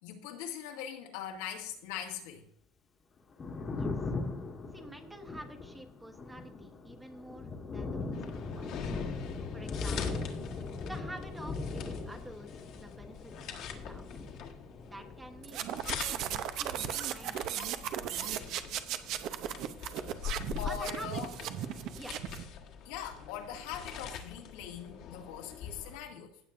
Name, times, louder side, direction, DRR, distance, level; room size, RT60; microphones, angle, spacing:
voice 1, 0.0-2.5 20.6-21.3 22.9-26.4, left 8 dB, 85° left, 2 dB, 1.9 m, -41 dB
Thunder, 3.2-17.6 17.9-19.1, left 3 dB, 25° left, 1.3 m, -40 dB
voice 2, 4.7-8.9 9.5-10.3 10.8-14.1 14.8-15.8 16.1-17.5 17.8-18.8 20.6-21.2 21.9-22.2, right 1 dB, 10° right, 5 dB, 1.1 m, -49 dB
sound 1, 8.1-26.0, left 8 dB, 50° left, 1.4 m, -44 dB
sound 2, 15.4-22.4, right 10 dB, 50° right, 0.7 m, -36 dB
16.0 x 7.4 x 2.6 m, 0.70 s
cardioid pair, 140°, 0 cm